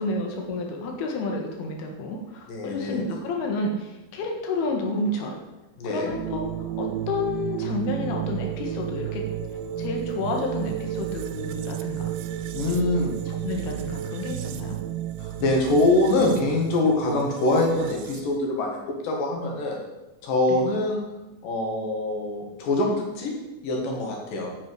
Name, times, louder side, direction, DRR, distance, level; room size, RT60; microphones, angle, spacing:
voice 1, 0.0-5.4 5.8-6.4 6.8-9.2 9.8-12.2 12.7-12.9 13.3-14.8 20.5-20.6, left 2 dB, 85° left, 2 dB, 3.4 m, -30 dB
voice 2, 2.5-3.0 5.8-6.1 12.5-13.1 15.2-19.8 20.2-21.0 21.4-23.3 23.6-24.5, left 2 dB, 65° left, 0 dB, 3.3 m, -24 dB
sound 1, 6.1-18.4, right 11 dB, 85° right, 2.4 m, -32 dB
8.3 x 8.2 x 4.7 m, 1.0 s
omnidirectional pair, 4.4 m